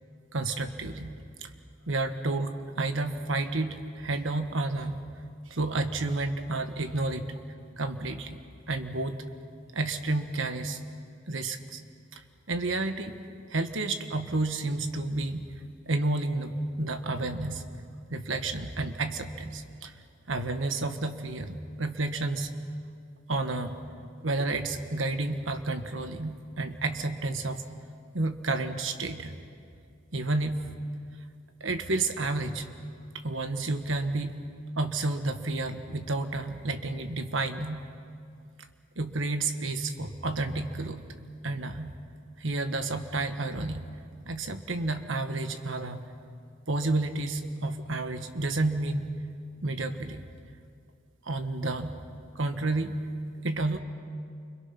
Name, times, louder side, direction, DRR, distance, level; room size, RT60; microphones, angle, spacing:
voice 1, 0.3-1.1 1.4-1.5 1.9-5.0 5.5-7.3 7.8-8.4 8.7-9.2 9.7-10.8 11.3-11.8 12.1-12.2 12.5-13.2 13.5-15.5 15.9-17.6 18.1-19.9 20.3-22.5 23.3-23.8 24.2-27.6 28.1-29.4 30.1-30.6 31.6-32.7 33.2-34.4 34.7-37.8 38.9-41.0 41.4-42.0 42.4-43.9 44.3-46.0 46.7-49.1 49.6-50.2 51.2-52.0 52.3-53.0 53.4-53.8, right 2 dB, 85° right, 7 dB, 1.5 m, -30 dB
29.5 x 25.5 x 6.0 m, 2.3 s
head